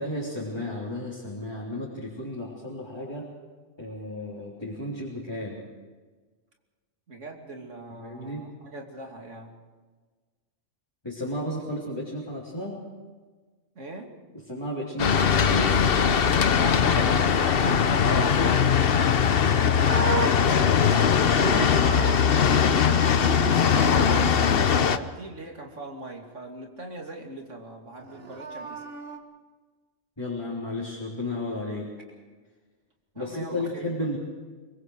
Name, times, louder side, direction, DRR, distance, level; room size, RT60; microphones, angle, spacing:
voice 1, 0.0-3.3 3.8-5.6 8.0-8.5 11.0-12.8 14.5-15.9 30.2-31.9 33.2-34.2, left 1 dB, 20° left, -6 dB, 3.6 m, -33 dB
voice 2, 7.1-9.6 13.7-14.1 16.5-19.2 19.5-23.1 23.5-28.8 33.1-34.0, right 2 dB, 80° right, 1 dB, 3.1 m, -39 dB
sound 1, 15.0-25.0, left 7 dB, 55° left, 1.0 m, -21 dB
Livestock farm animals working animals, 19.2-22.6 22.9-24.2 28.0-29.2, right 4 dB, 55° right, 1.7 m, -34 dB
24.5 x 22.0 x 4.8 m, 1.4 s
omnidirectional pair, 1.2 m